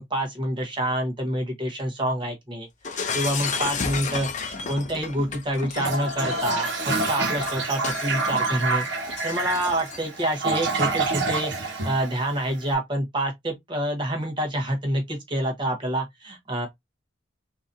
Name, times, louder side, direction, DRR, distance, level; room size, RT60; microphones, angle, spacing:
voice 1, 0.0-2.7 2.9-8.9 9.2-16.7, right 1 dB, 25° right, 1.1 m, -27 dB
Shatter, 2.8-10.2, left 5 dB, 35° left, 0.6 m, -33 dB
Toilet flush, 5.7-12.6, right 3 dB, 60° right, 1.2 m, -27 dB
3.9 x 2.8 x 2.6 m
head